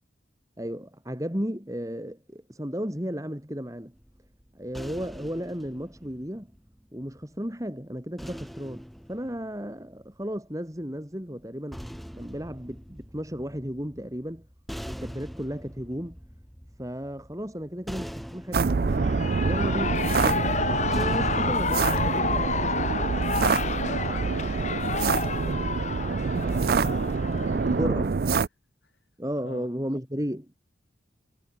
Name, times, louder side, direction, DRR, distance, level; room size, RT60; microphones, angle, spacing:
voice 1, 0.6-3.9 4.5-6.5 6.9-11.8 12.2-14.5 14.9-16.2 16.8-22.8 27.6-28.1 29.2-30.5, equal, 15° right, 3.0 m, -34 dB
sound 1, 3.9-7.2 8.2-10.4 11.4-22.5, equal, ahead, 2.1 m, -44 dB
sound 2, 18.5-28.5, right 4 dB, 50° right, 0.4 m, -26 dB
Shout / Cheering, 18.9-27.8, left 4 dB, 40° left, 1.3 m, -30 dB
voice 2, 23.6-25.9 26.4-27.0 27.5-28.2 28.8-28.9 29.3-29.7, left 1 dB, 65° left, 6.3 m, -43 dB
head